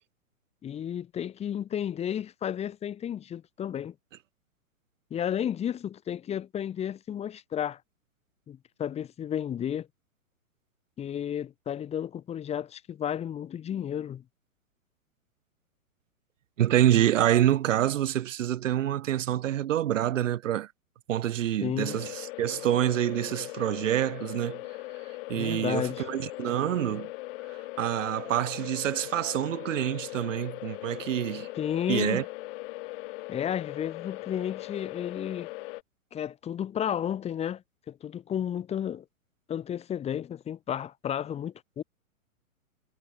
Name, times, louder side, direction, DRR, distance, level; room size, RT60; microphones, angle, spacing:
voice 1, 0.6-3.9 5.1-7.8 8.5-9.9 11.0-14.2 21.6-22.0 25.3-26.1 31.5-32.2 33.3-35.5 36.1-39.0 39.5-41.8, left 9 dB, 15° left, 1.2 m, -32 dB
voice 2, 16.6-20.7 21.1-24.6 25.3-27.1 27.5-31.5 31.9-32.2, right 12 dB, 60° right, 1.7 m, -27 dB
sound 1, 21.8-35.8, left 22 dB, 40° left, 1.6 m, -40 dB
hypercardioid pair, 125°, 43 cm